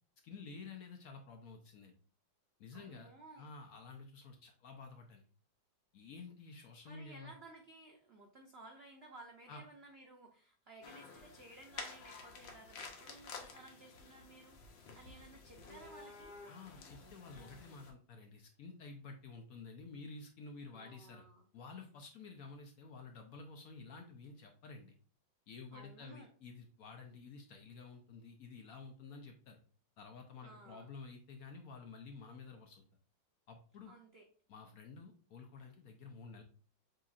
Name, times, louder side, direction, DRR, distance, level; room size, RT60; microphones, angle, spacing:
voice 1, 0.2-1.9 2.6-3.1 3.4-5.2 5.9-7.3 9.5-9.6 14.9-15.0 16.5-21.2 21.5-24.9 25.5-29.6 30.0-32.8 33.5-33.9 34.5-36.4, left 4 dB, 65° left, 3 dB, 0.9 m, -51 dB
voice 2, 2.7-3.5 6.8-16.4 20.7-21.5 25.7-26.3 30.4-30.9 33.9-34.3, right 2 dB, 85° right, 2 dB, 0.5 m, -57 dB
sound 1, 10.8-17.9, left 4 dB, 80° left, 1.6 m, -51 dB
7.7 x 2.8 x 2.4 m, 0.41 s
omnidirectional pair, 2.0 m